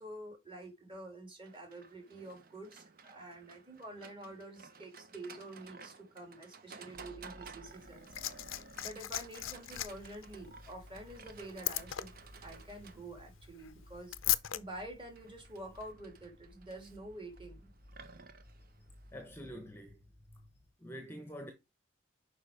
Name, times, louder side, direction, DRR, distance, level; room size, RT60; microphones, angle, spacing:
voice 1, 0.0-8.1 8.8-12.1 12.4-17.7, right 1 dB, 25° right, 2.8 m, -48 dB
Livestock farm animals working animals, 1.5-19.5, right 5 dB, 45° right, 0.8 m, -55 dB
sound 1, 6.9-20.7, left 1 dB, 65° right, 4.7 m, -58 dB
Liquid, 7.7-14.6 15.7-15.8, left 15 dB, 80° left, 0.5 m, -39 dB
voice 2, 19.1-20.0 20.8-21.5, equal, 10° left, 1.0 m, -46 dB
6.4 x 5.0 x 5.0 m
head